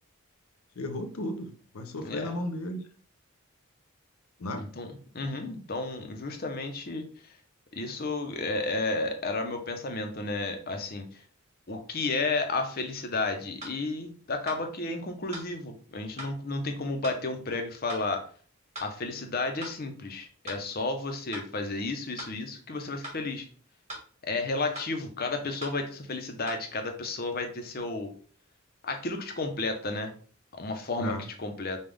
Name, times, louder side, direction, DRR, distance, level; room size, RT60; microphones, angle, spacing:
voice 1, 0.8-2.8 4.4-4.7 31.0-31.2, left 1 dB, 85° left, 6 dB, 0.7 m, -34 dB
voice 2, 2.0-2.4 4.6-7.0 7.8-11.0 11.7-18.2 18.8-23.4 24.2-28.1 28.8-30.1 30.6-31.8, left 3 dB, 45° left, 5 dB, 0.7 m, -32 dB
sound 1, 13.6-13.8 14.5-14.6 15.3-15.5 16.2-16.3 17.0-17.2 17.9-18.1 18.7-18.9 19.6-19.8 20.5-20.6 21.3-21.5 22.2-22.3 23.0-23.2 23.9-24.1 24.8-24.9 25.6-25.8 26.5-26.6, right 1 dB, 30° right, 1.6 m, -40 dB
5.4 x 2.4 x 3.4 m, 0.43 s
head